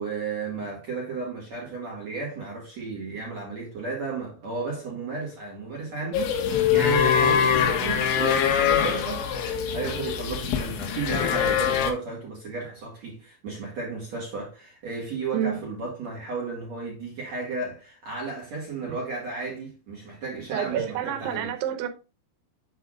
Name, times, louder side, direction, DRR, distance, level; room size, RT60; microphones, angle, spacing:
voice 1, 0.0-9.3 9.5-21.5, right 4 dB, 45° right, 2.8 m, -34 dB
sound 1, 6.1-11.9, left 8 dB, 90° left, 3.8 m, -23 dB
voice 2, 20.5-21.9, right 9 dB, 90° right, 3.4 m, -28 dB
8.2 x 8.1 x 2.5 m
omnidirectional pair, 5.2 m